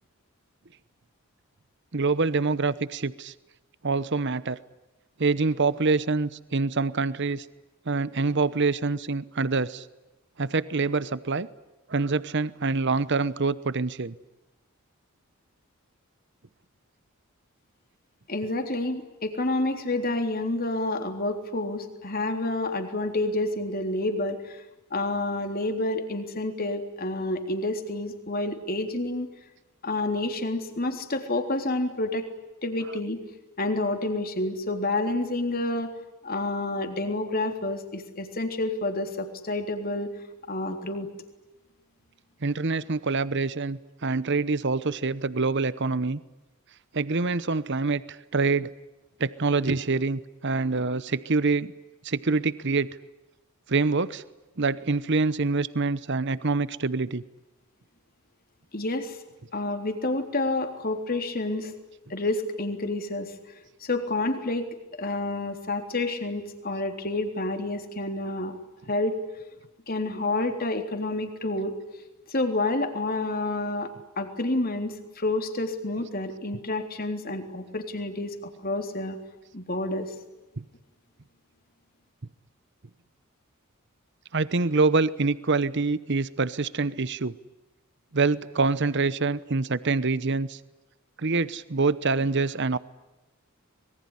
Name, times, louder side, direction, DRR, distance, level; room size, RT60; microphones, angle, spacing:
voice 1, 1.9-3.3 3.8-4.6 5.2-7.5 7.9-9.8 10.4-11.5 11.9-14.1 32.8-33.0 42.4-46.2 46.9-48.7 49.2-51.7 52.0-52.9 53.7-54.2 54.6-57.2 80.6-80.7 84.3-87.3 88.1-90.6 91.2-92.8, right 3 dB, 55° right, 17 dB, 0.9 m, -25 dB
voice 2, 18.3-24.7 24.9-29.3 29.8-32.3 32.6-33.2 33.6-35.9 36.2-40.1 40.5-41.1 58.7-59.2 59.5-61.7 62.1-64.7 65.0-68.6 68.9-69.2 69.9-71.8 72.3-73.9 74.2-78.4 78.6-79.2 79.5-80.1, left 2 dB, 40° left, 6 dB, 3.6 m, -29 dB
25.5 x 22.5 x 10.0 m, 1.0 s
head